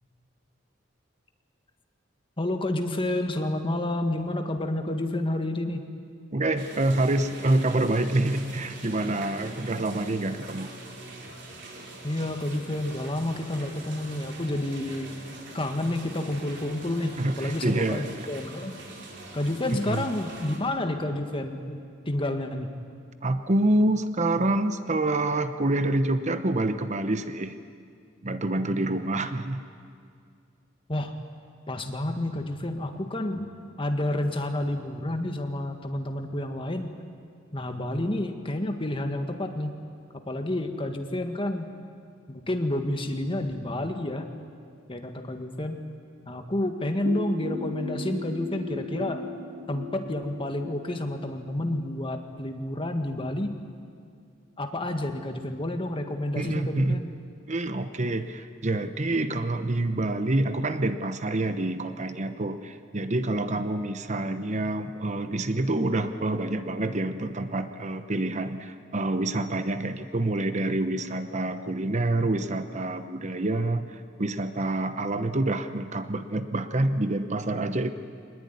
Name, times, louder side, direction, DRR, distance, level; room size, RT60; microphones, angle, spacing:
voice 1, 2.4-5.8 12.0-15.1 15.5-18.7 19.3-21.8 22.1-22.7 30.9-31.1 31.7-33.5 33.8-37.0 37.5-39.7 40.3-41.7 42.3-44.3 44.9-45.8 46.3-49.2 49.7-53.6 54.6-57.1, left 1 dB, 30° left, 5 dB, 1.8 m, -29 dB
voice 2, 6.3-10.7 17.2-18.3 19.7-20.1 23.2-27.5 28.2-29.6 56.4-57.0 57.5-77.9, right 2 dB, 40° right, 10 dB, 0.9 m, -27 dB
sound 1, 6.6-20.6, right 2 dB, 65° right, 4.1 m, -43 dB
sound 2, 47.1-52.6, left 2 dB, 80° right, 1.6 m, -38 dB
24.0 x 20.5 x 9.6 m, 2.3 s
head